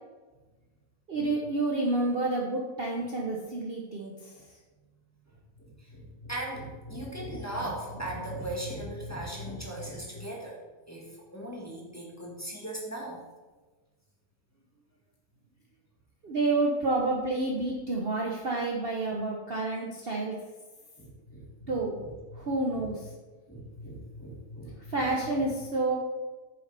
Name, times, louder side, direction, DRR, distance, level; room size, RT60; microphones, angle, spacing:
voice 1, 1.1-4.3 16.2-20.4 21.7-22.0 22.3-23.1 24.9-26.0, right 2 dB, 45° right, -2 dB, 1.0 m, -29 dB
voice 2, 5.6-10.6 10.9-11.1 11.3-13.2 21.0-21.5 22.0-22.1 22.7-22.9 23.5-25.0, right 1 dB, 10° left, -3 dB, 1.5 m, -38 dB
9.3 x 6.9 x 3.4 m, 1.3 s
omnidirectional pair, 1.7 m